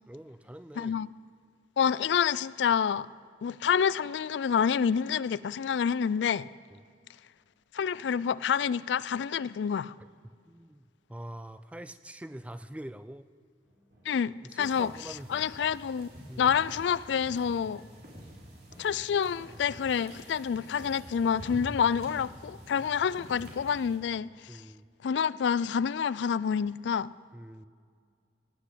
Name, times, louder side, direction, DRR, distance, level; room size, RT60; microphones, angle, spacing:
voice 1, 0.1-0.9 6.7-6.8 10.0-10.1 10.5-10.8 11.1-13.3 14.4-15.3 16.3-16.5 23.1-23.2 24.5-24.9 27.3-27.7, right 1 dB, 5° right, 0.3 m, -44 dB
voice 2, 0.8-1.1 1.8-3.1 3.4-6.5 7.7-9.9 14.1-14.9 15.3-16.1 16.4-17.8 18.8-24.6 25.0-27.1, left 7 dB, 80° left, 0.3 m, -28 dB
sound 1, 13.6-24.6, right 1 dB, 85° right, 4.2 m, -61 dB
sound 2, 14.6-24.0, equal, 60° right, 3.7 m, -47 dB
17.5 x 8.3 x 8.1 m
head